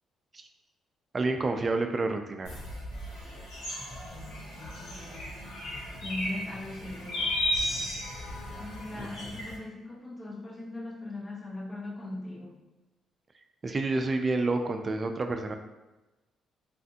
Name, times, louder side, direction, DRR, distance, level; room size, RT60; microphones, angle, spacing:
voice 1, 1.1-2.6 8.9-9.1 13.6-15.6, right 3 dB, 35° right, 5 dB, 0.3 m, -29 dB
sound 1, 2.4-9.6, left 1 dB, 75° left, 1.2 m, -35 dB
voice 2, 4.1-5.3 6.0-7.3 8.6-12.5, left 1 dB, 30° left, -5 dB, 1.0 m, -40 dB
3.3 x 2.4 x 2.7 m, 1.1 s
cardioid pair, 90°, 0 cm